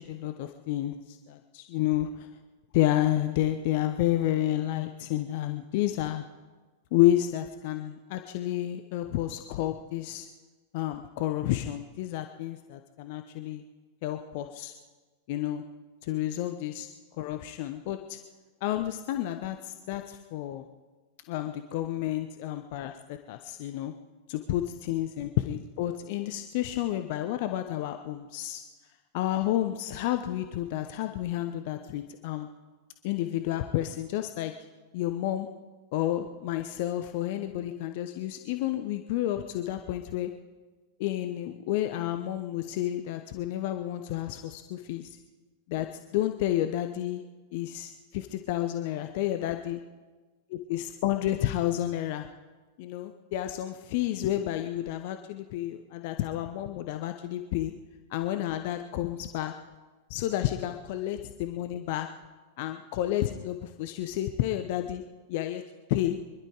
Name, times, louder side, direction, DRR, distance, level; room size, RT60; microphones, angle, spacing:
voice 1, 0.0-2.3 2.7-6.2 6.9-10.3 10.7-13.6 14.0-14.7 15.3-15.6 16.0-16.9 17.2-18.2 18.6-20.7 21.3-23.9 24.3-28.6 29.1-32.5 33.0-34.5 34.9-35.5 35.9-40.3 41.0-45.2 45.7-45.9 46.1-47.2 47.5-49.8 50.5-52.3 52.8-57.7 58.1-59.5 60.1-62.1 62.6-65.0 65.3-65.6 65.9-66.2, left 13 dB, 50° left, 7 dB, 0.8 m, -30 dB
24.5 x 11.5 x 4.8 m, 1.3 s
figure-of-eight pair, 90°, 0 cm